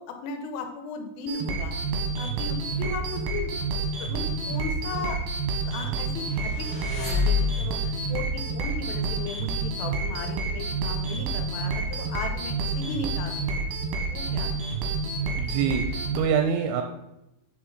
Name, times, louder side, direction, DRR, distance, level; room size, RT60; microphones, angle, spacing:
voice 1, 0.0-1.7 2.2-3.5 4.0-5.2 5.7-13.7 14.1-14.6, left 4 dB, 80° left, 5 dB, 3.4 m, -36 dB
sound 1, 1.3-16.2, right 3 dB, 70° right, 2.4 m, -29 dB
sound 2, 6.2-8.0, left 5 dB, 20° left, 2.2 m, -27 dB
voice 2, 15.4-16.8, right 7 dB, 90° right, 4 dB, 3.4 m, -25 dB
8.6 x 5.9 x 4.1 m, 0.87 s
omnidirectional pair, 5.9 m